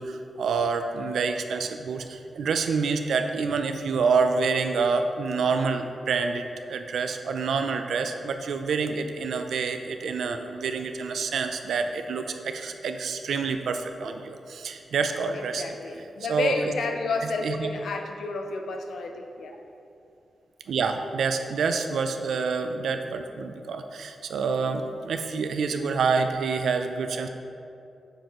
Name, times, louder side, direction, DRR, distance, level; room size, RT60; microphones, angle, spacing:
voice 1, 0.0-15.8 16.3-16.7 17.2-17.7 20.7-27.3, right 5 dB, 85° right, 6 dB, 0.5 m, -27 dB
voice 2, 15.6-19.6, left 3 dB, 80° left, 4 dB, 0.6 m, -31 dB
7.9 x 6.6 x 3.1 m, 2.6 s
wide cardioid pair, 135°, 0 cm